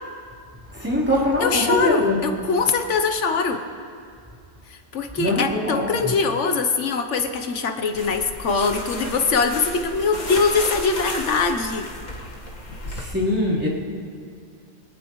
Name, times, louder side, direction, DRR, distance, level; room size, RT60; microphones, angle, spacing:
voice 1, 0.7-2.2 5.1-6.1 12.8-13.7, left 1 dB, 10° right, -9 dB, 3.7 m, -23 dB
voice 2, 1.4-3.6 4.7-11.9, left 4 dB, 70° left, 6 dB, 1.3 m, -22 dB
sound 1, 7.9-13.0, left 2 dB, 90° left, 2.1 m, -33 dB
23.0 x 18.0 x 3.1 m, 2.2 s
omnidirectional pair, 1.3 m